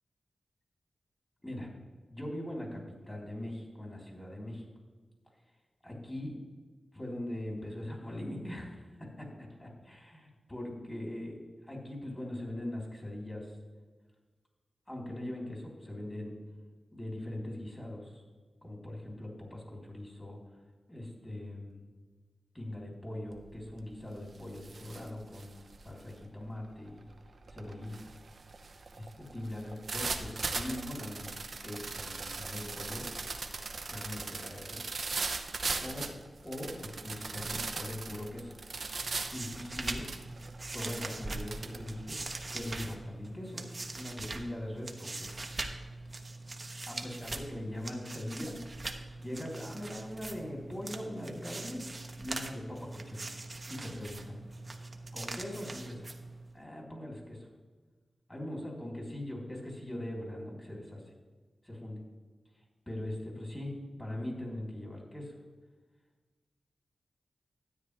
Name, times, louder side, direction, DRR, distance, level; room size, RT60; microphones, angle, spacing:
voice 1, 2.1-4.6 5.8-6.4 6.9-13.6 14.9-16.3 16.9-18.2 18.6-20.6 20.9-21.8 22.5-27.1 27.5-27.9 28.9-31.3 31.6-33.1 33.9-34.9 35.8-36.1 36.4-38.5 39.3-40.1 40.7-42.2 42.5-43.7 43.9-45.4 46.9-48.6 49.2-51.8 52.1-53.4 53.7-54.4 55.1-56.1 56.5-57.5 58.3-61.0 61.6-62.0 62.9-65.3, left 1 dB, 20° left, -1 dB, 3.7 m, -41 dB
sound 1, 23.3-23.6 24.0-42.9, right 4 dB, 65° right, 0.8 m, -40 dB
sound 2, 39.0-56.6, right 2 dB, 40° right, 1.1 m, -42 dB
13.0 x 9.3 x 3.5 m, 1.4 s
wide cardioid pair, 70°, 0 cm